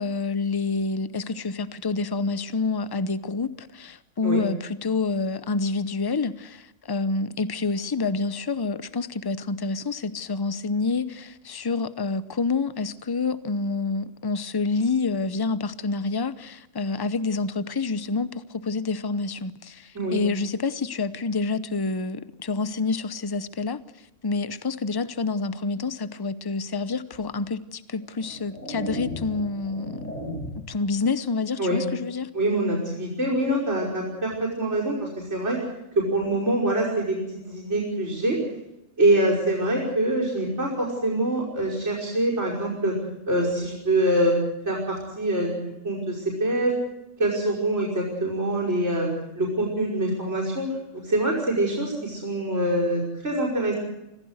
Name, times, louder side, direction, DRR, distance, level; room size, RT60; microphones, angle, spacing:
voice 1, 0.0-23.8 24.2-30.1 30.5-32.3, left 4 dB, 20° left, 0.7 m, -28 dB
sound 1, 27.1-27.3 28.0-30.8, equal, 90° left, 7.9 m, -36 dB
voice 2, 32.3-35.6 36.0-38.4 39.0-43.0 43.3-44.4 44.7-46.7 47.2-49.1 49.4-53.8, right 1 dB, 65° right, 5.7 m, -25 dB
25.5 x 16.0 x 8.0 m
omnidirectional pair, 1.3 m